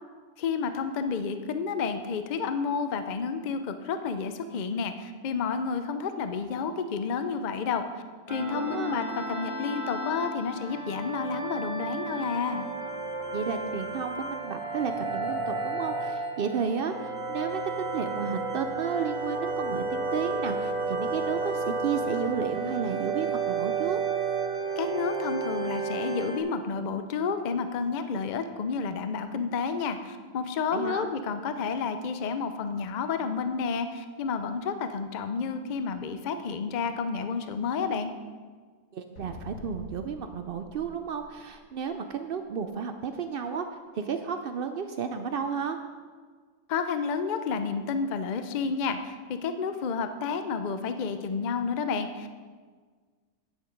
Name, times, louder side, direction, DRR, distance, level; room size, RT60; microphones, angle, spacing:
voice 1, 0.4-12.7 24.8-38.1 46.7-52.4, left 5 dB, 55° left, 9 dB, 0.5 m, -30 dB
sound 1, 8.3-26.4, right 3 dB, 20° right, 1.2 m, -32 dB
voice 2, 8.5-9.0 13.3-24.0 30.7-31.1 38.9-43.7 43.9-45.8, right 6 dB, 85° right, 7 dB, 0.5 m, -32 dB
sound 2, 39.2-41.9, left 2 dB, 85° left, 2.1 m, -46 dB
9.7 x 8.2 x 5.2 m, 1.5 s
omnidirectional pair, 1.6 m